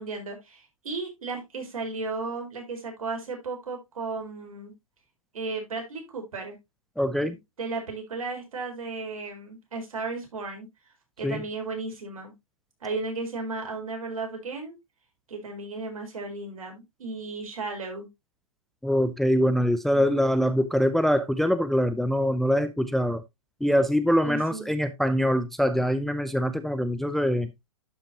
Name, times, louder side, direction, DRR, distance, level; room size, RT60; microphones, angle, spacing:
voice 1, 0.0-4.7 5.3-6.6 7.2-10.7 11.2-12.3 12.8-14.8 15.3-18.1 19.9-20.2 24.2-24.7, right 3 dB, 75° right, 4.6 m, -35 dB
voice 2, 7.0-7.4 11.2-11.4 18.8-23.2 23.6-27.5, equal, ahead, 0.5 m, -24 dB
12.0 x 5.8 x 2.8 m
hypercardioid pair, 130°, 18 cm